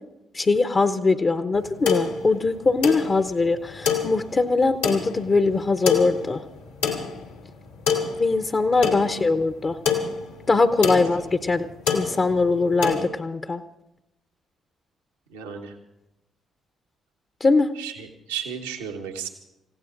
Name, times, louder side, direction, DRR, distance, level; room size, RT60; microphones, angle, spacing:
voice 1, 0.3-6.4 8.2-9.8 10.5-11.7 11.9-13.6 17.4-17.7, left 3 dB, 40° left, 10 dB, 0.8 m, -21 dB
sound 1, 1.5-13.1, left 6 dB, 85° left, 1.9 m, -28 dB
voice 2, 8.9-9.2 10.8-11.0 15.3-15.7 17.8-19.3, right 7 dB, 85° right, 2 dB, 1.2 m, -34 dB
29.0 x 16.0 x 2.6 m, 0.89 s
hypercardioid pair, 40°, 0 cm